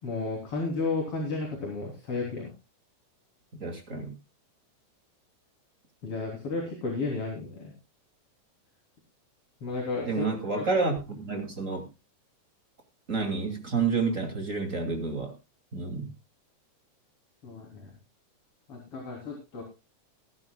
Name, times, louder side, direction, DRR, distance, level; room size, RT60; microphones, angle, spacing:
voice 1, 0.0-2.5 6.0-7.7 9.6-10.6 17.4-17.9 18.7-19.6, left 3 dB, 45° left, -1 dB, 4.2 m, -33 dB
voice 2, 3.6-4.2 10.1-11.9 13.1-15.3 15.7-16.1, right 4 dB, 25° right, 4 dB, 2.6 m, -29 dB
21.0 x 11.5 x 2.3 m, 0.26 s
omnidirectional pair, 3.6 m